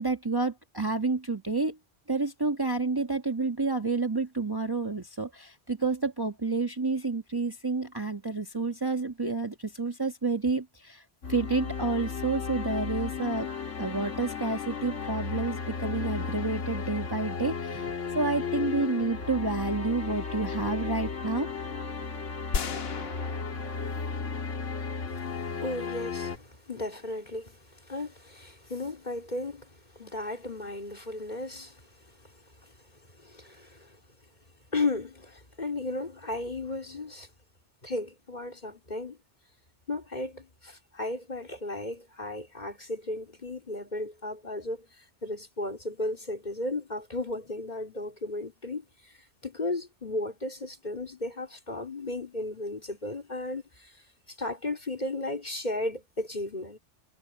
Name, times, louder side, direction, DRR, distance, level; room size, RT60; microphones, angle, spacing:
voice 1, 0.0-1.8 2.1-11.0 11.3-13.5 13.8-21.5, right 3 dB, 20° right, 1.5 m, -29 dB
sound 1, 11.2-26.4, left 5 dB, 85° left, 2.2 m, -34 dB
sound 2, 22.5-24.8, left 5 dB, 60° left, 1.2 m, -35 dB
voice 2, 25.6-32.3 32.6-32.7 33.1-34.0 34.7-37.3 37.8-39.2 39.9-49.1 49.4-53.9 54.4-56.8, left 2 dB, 35° left, 3.9 m, -35 dB
omnidirectional pair, 1.2 m